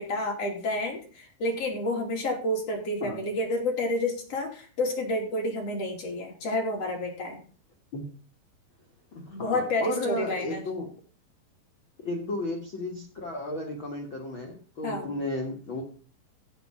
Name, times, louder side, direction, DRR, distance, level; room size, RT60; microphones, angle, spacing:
voice 1, 0.0-7.4 9.3-10.6 14.8-15.1, left 1 dB, 35° left, 1 dB, 3.5 m, -29 dB
voice 2, 9.1-10.9 12.0-15.8, left 2 dB, 80° left, 1 dB, 1.1 m, -33 dB
15.5 x 6.0 x 5.7 m, 0.40 s
omnidirectional pair, 5.4 m